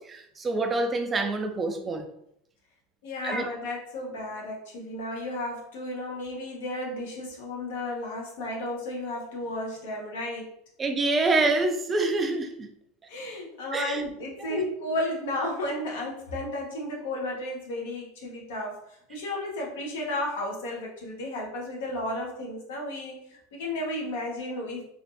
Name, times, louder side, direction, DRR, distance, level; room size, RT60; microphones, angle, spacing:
voice 1, 0.0-2.1 3.2-3.5 10.8-12.7 13.7-14.0 14.5-14.6, right 2 dB, 20° right, 0.4 m, -26 dB
voice 2, 3.0-10.5 13.1-24.9, left 1 dB, 80° left, 1.0 m, -33 dB
3.3 x 2.5 x 2.7 m
supercardioid pair, 125°, 0 cm